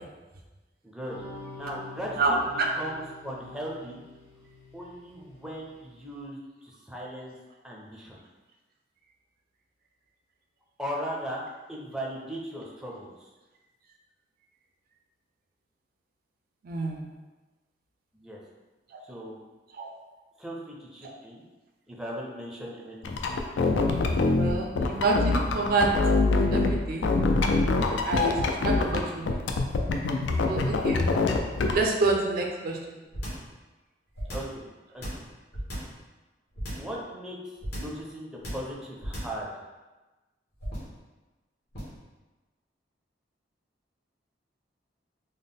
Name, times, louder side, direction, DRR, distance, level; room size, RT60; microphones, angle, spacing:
voice 1, 0.8-1.3 1.5-2.4 2.7-4.0 4.7-7.3 7.6-8.2 10.8-11.4 11.7-13.3 18.1-18.4 19.0-19.4 20.4-21.4 21.9-23.2 23.6-23.8 34.3-34.6 34.9-35.0 36.7-37.4 37.7-39.5, equal, 5° right, -4 dB, 0.5 m, -38 dB
sound 1, 1.1-5.9, left 2 dB, 45° left, 1.3 m, -46 dB
voice 2, 2.2-2.7 16.6-17.1 19.7-19.9 24.2-25.9 26.5-27.1 28.0-29.5 30.5-31.0 31.7-32.8, right 3 dB, 55° right, 1 dB, 0.4 m, -27 dB
sound 2, 23.0-26.7 27.0-29.0 29.3-31.7, left 3 dB, 80° left, 0.4 m, -24 dB
sound 3, 33.1-33.5 34.1-34.6 35.0-36.0 36.6-36.9 37.6-38.0 38.4-38.7 39.0-39.4 40.6-41.0 41.7-42.0, equal, 65° left, 1.3 m, -36 dB
3.9 x 2.1 x 3.5 m, 1.2 s
head